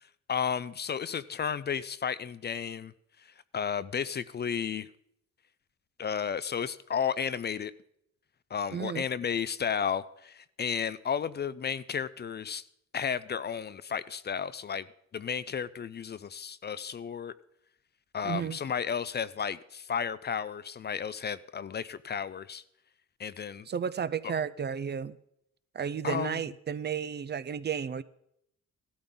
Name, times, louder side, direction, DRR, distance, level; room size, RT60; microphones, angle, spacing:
voice 1, 0.3-2.9 3.5-4.9 6.0-7.7 8.5-12.6 12.9-14.9 15.1-17.3 18.1-22.6 23.2-23.7 24.2-24.3 26.0-26.4, left 7 dB, 35° left, 0.5 m, -33 dB
voice 2, 8.7-9.1 18.2-18.6 23.7-25.2 25.7-28.0, right 7 dB, 35° right, 0.5 m, -33 dB
17.0 x 12.5 x 3.9 m
cardioid pair, 90°, 30 cm